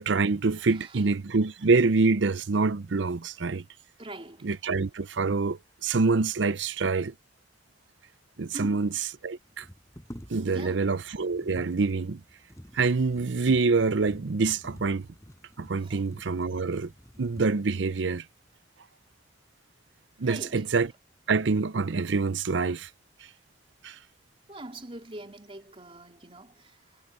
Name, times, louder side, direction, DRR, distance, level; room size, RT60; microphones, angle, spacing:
voice 1, 0.0-3.6 4.4-7.1 8.4-8.9 9.2-9.7 10.3-12.2 12.7-15.1 15.6-16.9 17.2-18.2 20.2-20.9 21.3-22.9 23.8-24.0, right 4 dB, 75° right, 0.6 m, -26 dB
voice 2, 0.7-1.0 4.0-4.5 8.5-9.0 10.3-10.9 15.8-16.0 20.2-20.7 24.5-27.0, right 1 dB, 30° right, 3.9 m, -43 dB
sound 1, 8.0-8.2 9.4-17.8 18.5-18.6 19.0-19.7 20.0-20.6, equal, 15° left, 4.8 m, -49 dB
head